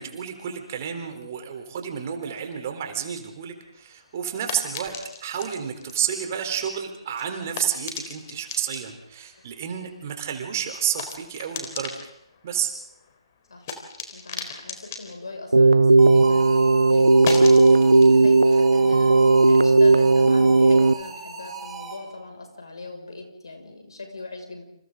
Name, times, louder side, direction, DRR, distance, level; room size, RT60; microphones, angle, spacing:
voice 1, 0.0-12.0 12.4-12.7, right 8 dB, 30° right, 5 dB, 3.9 m, -30 dB
sound 1, 3.6-16.4 16.7-19.9, left 5 dB, 30° left, 4.0 m, -39 dB
voice 2, 14.1-24.6, left 3 dB, 55° left, 3 dB, 6.5 m, -40 dB
Keyboard (musical), 15.5-20.9, right 3 dB, 75° right, 0.8 m, -16 dB
sound 2, 16.0-22.3, right 5 dB, 10° right, 4.1 m, -38 dB
29.5 x 28.0 x 4.0 m, 0.77 s
figure-of-eight pair, 140°, 3 cm